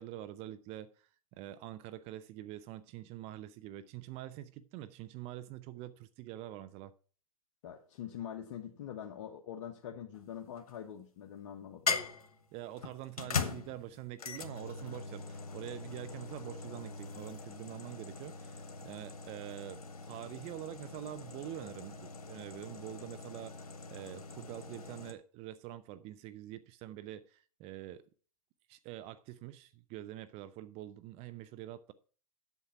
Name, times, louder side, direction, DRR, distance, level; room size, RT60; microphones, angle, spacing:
voice 1, 0.0-6.9 12.5-28.0 28.7-31.9, right 13 dB, 35° right, 0.6 m, -46 dB
voice 2, 7.6-12.0, left 9 dB, 55° left, 1.3 m, -44 dB
sound 1, 10.1-10.8 11.9-25.1, left 4 dB, 85° left, 1.4 m, -41 dB
8.2 x 7.0 x 5.7 m
hypercardioid pair, 120°, 19 cm